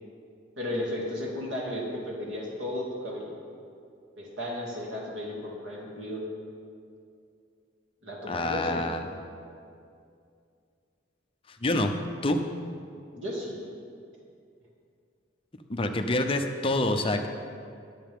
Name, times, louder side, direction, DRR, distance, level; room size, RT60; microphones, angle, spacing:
voice 1, 0.6-3.3 4.2-6.2 8.0-8.9 13.1-13.6, left 1 dB, 90° right, -3 dB, 2.5 m, -34 dB
voice 2, 8.3-9.0 11.6-11.9 12.2-12.4 15.7-17.3, left 1 dB, 30° left, 5 dB, 0.6 m, -26 dB
21.0 x 7.4 x 3.6 m, 2.4 s
head